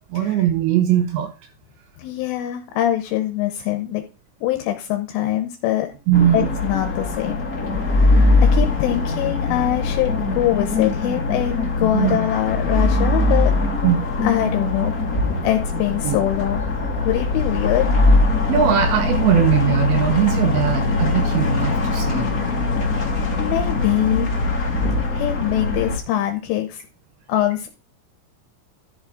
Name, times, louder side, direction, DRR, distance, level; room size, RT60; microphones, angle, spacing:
voice 1, 0.1-1.3 6.1-6.5 11.9-12.2 13.8-14.1 16.0-16.2 18.5-22.5, right 10 dB, 75° right, 7 dB, 3.1 m, -20 dB
voice 2, 2.0-4.0 4.4-6.0 6.3-7.5 7.9-13.5 14.2-14.9 15.4-16.6 17.1-17.9 23.4-24.3 25.1-26.8 27.3-27.7, left 13 dB, 80° left, 5 dB, 3.3 m, -23 dB
sound 1, 6.1-26.0, left 2 dB, 50° left, 1.0 m, -21 dB
12.0 x 6.9 x 3.8 m, 0.32 s
omnidirectional pair, 5.8 m